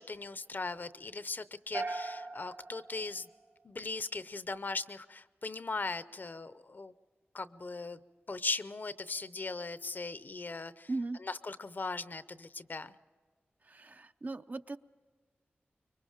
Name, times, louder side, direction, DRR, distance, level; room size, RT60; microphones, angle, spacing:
voice 1, 0.0-3.3 3.6-6.9 7.3-8.0 8.3-10.9 11.2-13.0, left 3 dB, 50° left, 14 dB, 0.7 m, -39 dB
sound 1, 1.7-4.0, right 3 dB, 80° right, 1.9 m, -41 dB
voice 2, 10.9-11.2 13.6-14.8, right 2 dB, 45° right, 10 dB, 0.6 m, -38 dB
25.0 x 23.0 x 5.1 m, 1.5 s
wide cardioid pair, 70°, 4 cm